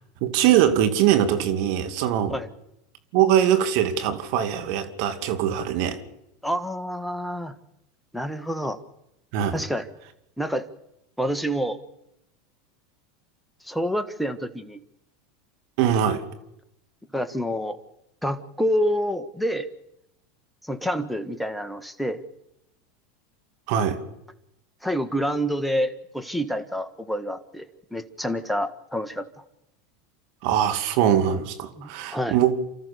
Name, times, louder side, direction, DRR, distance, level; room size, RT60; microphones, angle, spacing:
voice 1, 0.2-2.3 3.1-6.0 9.3-9.5 15.8-16.2 23.7-24.0 30.4-32.6, right 10 dB, 60° right, 2.5 m, -22 dB
voice 2, 6.4-7.5 8.1-8.8 9.5-9.9 10.4-10.6 11.2-11.8 13.6-14.8 17.1-17.8 18.2-19.7 20.6-22.2 24.8-27.6 27.9-29.3 31.8-32.4, equal, ahead, 1.7 m, -27 dB
29.5 x 13.5 x 6.9 m
hypercardioid pair, 90°, 0 cm